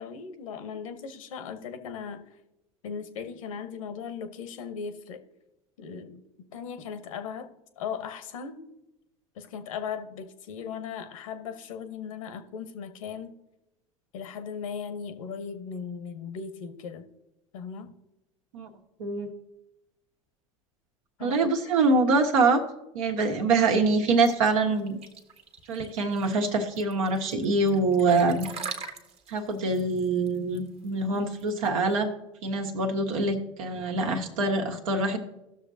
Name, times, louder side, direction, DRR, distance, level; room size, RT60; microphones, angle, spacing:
voice 1, 0.0-2.3 2.8-5.2 5.8-6.2 6.5-8.6 9.3-13.4 14.1-17.0 17.5-18.0 21.2-21.5, left 6 dB, 75° left, 10 dB, 1.0 m, -38 dB
voice 2, 21.2-22.6 22.9-25.0 25.7-28.5 29.3-32.1 32.4-35.2, right 3 dB, 70° right, 4 dB, 1.5 m, -24 dB
sound 1, 24.3-31.9, right 5 dB, 35° right, 1.3 m, -42 dB
17.0 x 6.5 x 2.7 m, 0.95 s
hypercardioid pair, 80°, 17 cm